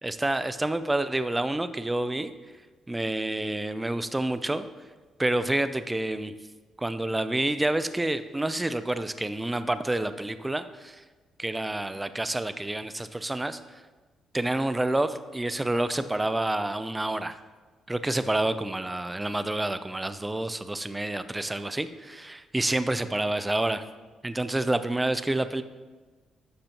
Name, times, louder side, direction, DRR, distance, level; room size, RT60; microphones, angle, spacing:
voice 1, 0.0-2.3 2.9-4.7 5.2-6.3 6.8-11.0 11.4-13.6 14.3-17.4 17.9-23.8 24.2-25.6, right 1 dB, 15° right, 11 dB, 0.5 m, -28 dB
12.0 x 6.7 x 2.9 m, 1.3 s
cardioid pair, 90°, 0 cm